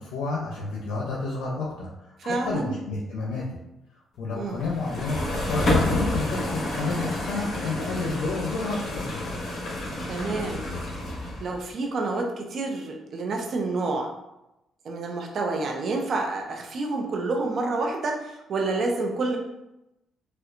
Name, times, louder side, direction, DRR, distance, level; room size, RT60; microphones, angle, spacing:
voice 1, 0.0-3.6 4.2-5.2 5.5-9.4, left 3 dB, 85° left, -3 dB, 0.6 m, -30 dB
voice 2, 2.2-2.7 4.3-4.7 10.1-10.6 11.4-14.1 14.8-19.4, right 3 dB, 60° right, 2 dB, 0.7 m, -28 dB
sound 1, 4.6-11.6, left 1 dB, 55° left, 1.2 m, -29 dB
4.3 x 2.3 x 2.5 m, 0.90 s
cardioid pair, 90°, 0 cm